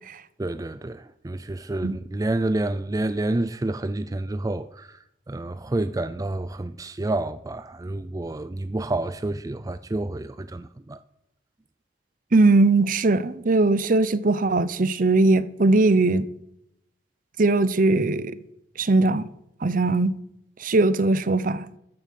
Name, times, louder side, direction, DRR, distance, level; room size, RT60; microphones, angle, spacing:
voice 1, 0.4-5.0 5.3-11.0, right 2 dB, 20° right, 0.4 m, -29 dB
voice 2, 12.3-16.3 17.4-18.4 18.8-19.2 19.6-20.1 20.6-21.7, right 2 dB, 50° right, 0.7 m, -20 dB
14.0 x 8.8 x 7.4 m
head